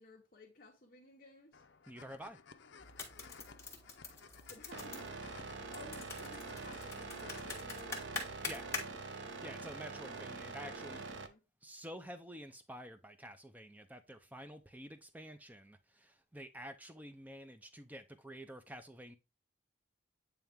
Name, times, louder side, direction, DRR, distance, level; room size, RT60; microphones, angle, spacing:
voice 1, 0.0-1.6 4.5-5.2 5.7-9.8 10.6-11.4, left 2 dB, 45° left, 1.1 m, -57 dB
sound 1, 1.5-7.5, left 5 dB, 70° left, 0.6 m, -57 dB
voice 2, 1.9-2.4 8.5-8.6 9.4-11.0 11.6-19.2, equal, 10° right, 0.6 m, -49 dB
sound 2, 2.8-8.8, left 3 dB, 15° left, 1.5 m, -46 dB
sound 3, 4.7-11.3, right 4 dB, 65° right, 0.7 m, -45 dB
8.8 x 3.5 x 3.5 m
head